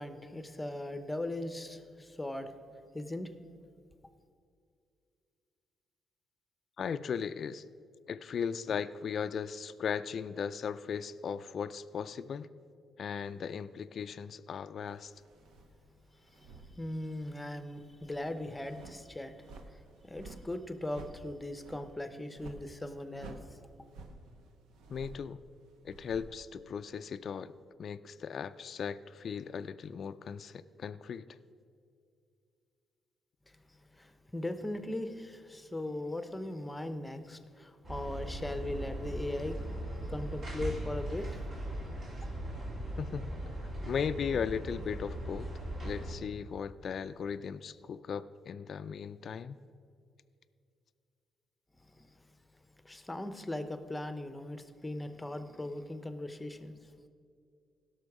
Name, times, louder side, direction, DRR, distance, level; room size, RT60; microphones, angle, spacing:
voice 1, 0.0-2.5 2.9-3.3 16.3-19.3 20.0-23.6 34.0-41.3 51.9-52.0 52.8-56.7, left 1 dB, 10° left, 9 dB, 0.9 m, -39 dB
voice 2, 6.8-7.6 8.1-12.5 13.0-15.1 24.9-25.4 25.8-27.5 27.8-31.3 43.0-43.3 43.9-45.5 45.8-49.6, left 7 dB, 55° left, 12 dB, 0.4 m, -37 dB
sound 1, 15.1-17.3 17.6-26.7, right 3 dB, 85° right, 1.0 m, -52 dB
sound 2, 37.8-46.1, right 1 dB, 50° right, 2.8 m, -39 dB
16.5 x 6.3 x 4.8 m, 2.4 s
cardioid pair, 90°, 0 cm